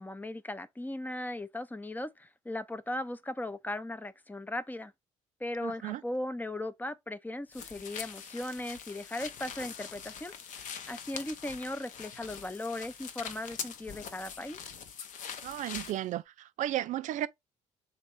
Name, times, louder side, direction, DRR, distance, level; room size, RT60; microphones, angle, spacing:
voice 1, 0.0-4.9 5.4-14.6, left 1 dB, 10° left, 0.6 m, -38 dB
voice 2, 5.6-6.0 15.4-17.3, right 13 dB, 50° right, 0.4 m, -34 dB
sound 1, 7.5-16.0, left 7 dB, 55° left, 0.8 m, -43 dB
3.6 x 3.0 x 4.3 m
hypercardioid pair, 50°, 16 cm